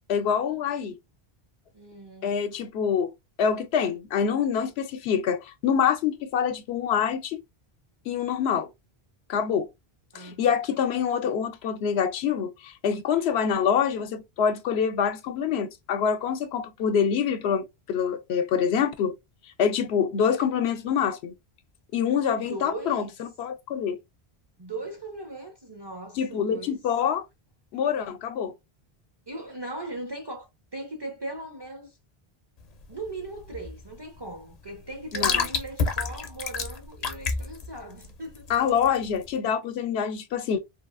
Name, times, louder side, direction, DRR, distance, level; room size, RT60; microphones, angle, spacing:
voice 1, 0.1-0.9 2.2-3.1 3.4-7.4 8.1-8.7 9.3-9.7 10.1-19.1 19.6-21.3 21.9-24.0 26.2-27.2 27.7-28.5 35.1-35.4 38.5-40.6, left 7 dB, 85° left, 0.8 m, -26 dB
voice 2, 1.7-2.3 10.1-10.6 22.5-23.1 24.6-26.8 29.3-32.0 32.9-38.5, right 2 dB, 35° right, 0.4 m, -39 dB
sound 1, 32.6-39.3, left 5 dB, 50° left, 0.5 m, -31 dB
3.2 x 2.3 x 2.4 m
omnidirectional pair, 1.0 m